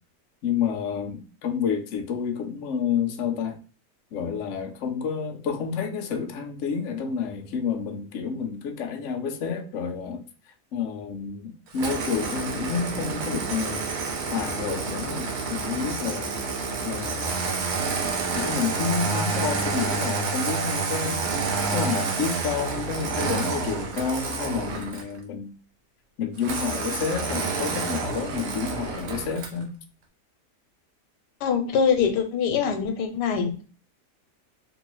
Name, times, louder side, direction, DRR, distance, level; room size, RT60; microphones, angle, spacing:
voice 1, 0.4-3.6 4.1-10.2 10.7-13.9 14.3-16.4 16.8-17.9 18.3-21.3 21.7-25.5 26.2-29.7, left 6 dB, 70° left, 0.7 m, -29 dB
Engine starting, 11.7-25.2 26.4-29.6, right 4 dB, 65° right, 0.8 m, -29 dB
voice 2, 31.4-33.6, left 6 dB, 90° left, 1.2 m, -23 dB
2.9 x 2.6 x 3.0 m
omnidirectional pair, 1.8 m